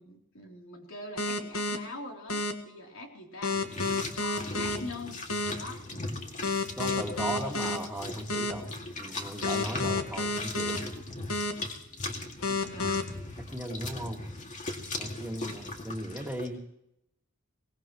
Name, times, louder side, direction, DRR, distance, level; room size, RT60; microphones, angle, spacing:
voice 1, 0.0-3.9 4.2-6.1 12.4-13.2 15.4-15.7, left 2 dB, 65° left, 0 dB, 3.5 m, -43 dB
sound 1, 1.2-1.8 2.3-2.5 3.4-4.8 5.3-5.5 6.4-7.8 8.3-8.5 9.4-10.8 11.3-11.5 12.4-13.0, left 3 dB, 85° left, 1.6 m, -29 dB
sound 2, 3.5-16.5, left 2 dB, 35° left, 2.3 m, -39 dB
voice 2, 6.8-10.9 13.5-14.4 15.0-16.6, right 1 dB, 10° right, 0 dB, 2.2 m, -37 dB
23.0 x 19.5 x 3.1 m, 0.79 s
head